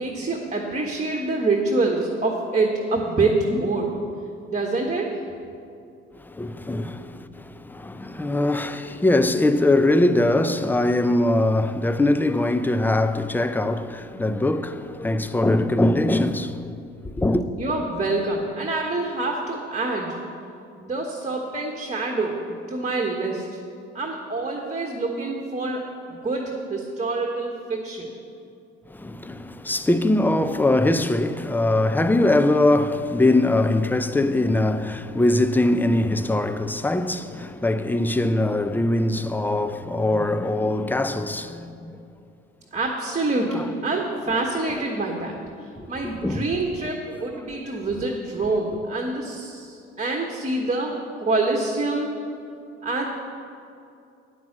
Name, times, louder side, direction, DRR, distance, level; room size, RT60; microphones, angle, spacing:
voice 1, 0.0-3.9 4.5-5.2 17.6-20.2 20.8-23.6 23.9-25.8 26.1-28.1 42.7-45.4 45.9-52.1 52.8-53.1, right 3 dB, 20° right, 1.3 m, -26 dB
voice 2, 6.4-7.0 7.8-16.5 17.2-17.4 29.0-41.6 46.2-46.4, left 2 dB, 5° left, 0.5 m, -21 dB
9.6 x 6.0 x 7.4 m
hypercardioid pair, 60°, 32 cm